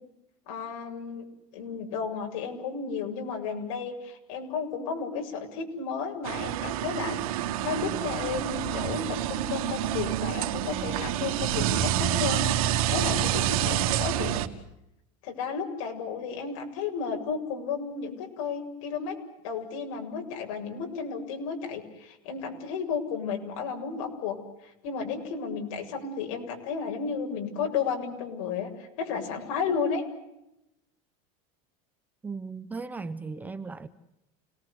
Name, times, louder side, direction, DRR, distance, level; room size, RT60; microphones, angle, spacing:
voice 1, 0.5-1.2 1.5-12.4 12.9-14.4 15.2-19.2 19.4-30.0, left 6 dB, 70° left, 7.5 m, -33 dB
sound 1, 6.2-14.5, right 11 dB, 85° right, 2.5 m, -28 dB
voice 2, 32.2-33.9, right 4 dB, 10° right, 0.9 m, -37 dB
29.5 x 20.0 x 8.3 m
supercardioid pair, 170°, 18 cm